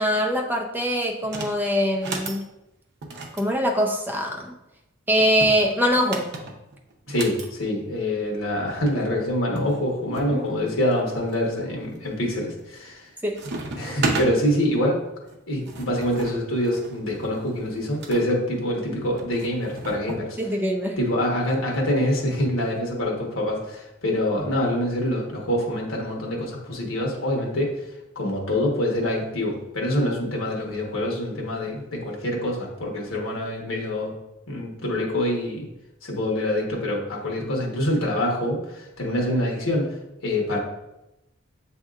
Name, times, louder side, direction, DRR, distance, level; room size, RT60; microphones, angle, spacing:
voice 1, 0.0-2.5 3.3-4.5 5.1-6.3 10.3-10.4 13.2-13.4 20.4-21.0, equal, 10° right, 1 dB, 0.5 m, -23 dB
sound 1, 1.2-1.6 1.9-2.4 3.0-4.4 5.2-7.5 8.6-8.7 8.9-9.0 9.6-10.3 10.9-11.4 12.0-12.3 12.6-13.1 13.4-14.3 15.3-18.2 19.2-20.3, right 3 dB, 55° right, 0.7 m, -33 dB
voice 2, 7.1-13.1 13.8-15.0 15.5-20.4 21.0-27.7 28.1-34.1 34.5-35.7 36.0-40.0 40.2-40.6, left 1 dB, 85° left, -1 dB, 1.2 m, -25 dB
7.4 x 2.7 x 2.4 m, 0.91 s
head